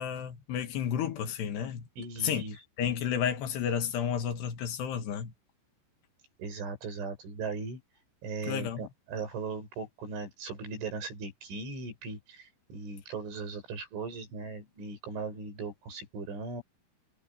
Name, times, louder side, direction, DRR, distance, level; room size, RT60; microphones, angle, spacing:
voice 1, 0.0-1.9 2.2-2.4 2.8-5.3 8.5-8.9, left 8 dB, 70° left, 3.6 m, -31 dB
voice 2, 2.0-2.6 6.4-7.8 8.2-16.6, right 4 dB, 90° right, 10.0 m, -38 dB
omnidirectional pair, 5.3 m